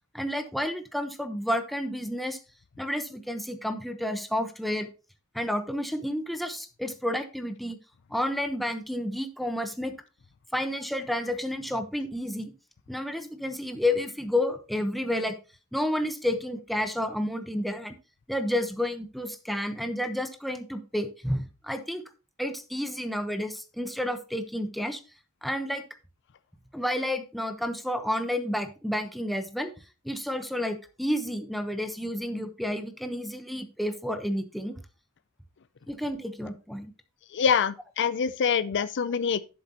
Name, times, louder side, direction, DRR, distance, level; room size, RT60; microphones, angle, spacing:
voice 1, 0.1-2.4 2.8-4.9 5.3-7.8 8.1-9.9 10.5-12.5 12.9-15.3 15.7-18.0 18.3-22.0 22.4-25.0 25.4-25.8 26.7-29.7 30.0-34.8 35.9-36.9 38.8-38.9, left 1 dB, ahead, 0.9 m, -30 dB
voice 2, 37.3-39.4, left 6 dB, 55° left, 0.5 m, -25 dB
10.5 x 7.8 x 2.9 m
head